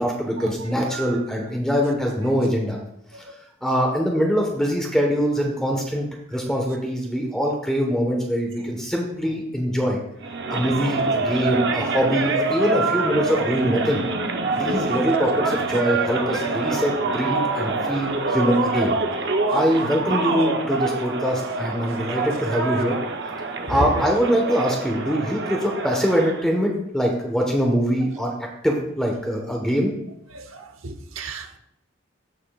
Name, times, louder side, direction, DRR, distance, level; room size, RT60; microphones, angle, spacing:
voice 1, 0.0-2.8 3.6-10.0 10.5-14.0 14.5-19.0 19.5-23.0 23.7-28.3 28.6-29.9, equal, 5° left, 0 dB, 1.2 m, -23 dB
voice 2, 0.9-1.2 3.1-3.2 11.4-11.5 14.7-14.9 15.8-16.0 16.6-16.7 22.4-22.5 23.1-24.0 30.3-31.6, right 2 dB, 85° right, 7 dB, 1.0 m, -34 dB
sound 1, 10.2-26.4, right 3 dB, 55° right, 0.7 m, -25 dB
15.5 x 5.6 x 2.4 m, 0.75 s
head